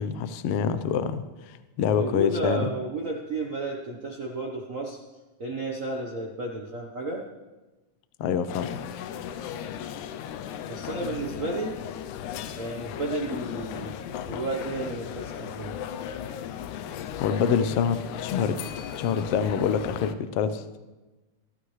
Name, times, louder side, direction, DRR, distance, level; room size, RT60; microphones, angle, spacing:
voice 1, 0.0-2.7 8.2-8.7 17.2-18.6 19.0-20.8, left 7 dB, 70° left, 11 dB, 1.4 m, -26 dB
voice 2, 1.9-5.0 5.4-7.2 10.7-11.8 12.6-14.0 14.3-15.8, right 2 dB, 85° right, -1 dB, 0.7 m, -32 dB
sound 1, 8.5-20.1, left 9 dB, 90° left, 2.1 m, -36 dB
23.5 x 12.0 x 3.2 m, 1.1 s
omnidirectional pair, 3.4 m